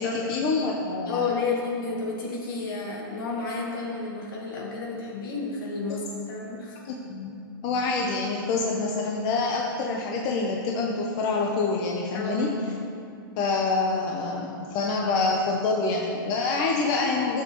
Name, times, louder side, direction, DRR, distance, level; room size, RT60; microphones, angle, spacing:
voice 1, 0.0-1.3 6.8-12.6 13.4-17.4, left 3 dB, 30° left, 0 dB, 0.8 m, -26 dB
voice 2, 1.1-6.8 12.1-12.5, left 4 dB, 65° left, -2 dB, 2.2 m, -31 dB
12.0 x 7.2 x 3.1 m, 2.5 s
hypercardioid pair, 145°, 12 cm